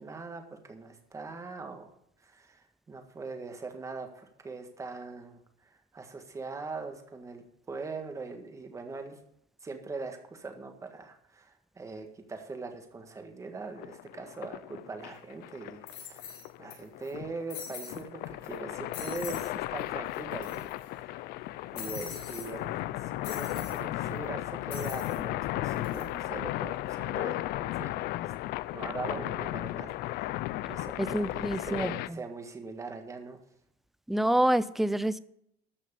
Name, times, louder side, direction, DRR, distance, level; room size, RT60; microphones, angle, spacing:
voice 1, 0.0-2.0 2.2-9.2 9.6-21.3 21.7-27.9 28.7-33.4, right 4 dB, 15° right, 5 dB, 1.7 m, -42 dB
sound 1, 13.8-32.1, left 16 dB, 60° left, 0.5 m, -35 dB
sound 2, 15.0-15.1 15.9-16.7 17.0-17.1 17.5-18.0 18.4-18.6 18.9-19.5 19.8-19.9 20.1-20.8 21.7-22.5 23.2-23.8 24.7-25.2 25.7-26.0, left 8 dB, 80° left, 5.3 m, -43 dB
voice 2, 31.0-32.2 34.1-35.2, right 1 dB, ahead, 16 dB, 0.4 m, -27 dB
13.5 x 6.3 x 6.9 m, 0.74 s
cardioid pair, 155°, 18 cm